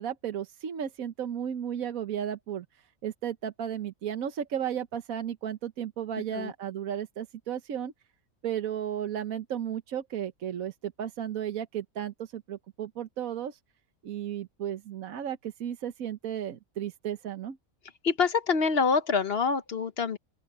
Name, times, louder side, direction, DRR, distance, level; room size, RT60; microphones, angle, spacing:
voice 1, 0.0-2.6 3.0-7.9 8.4-13.6 14.0-17.6, right 9 dB, 80° right, 1.4 m, -34 dB
voice 2, 18.0-20.2, left 5 dB, 50° left, 1.0 m, -26 dB
open air
omnidirectional pair, 1.4 m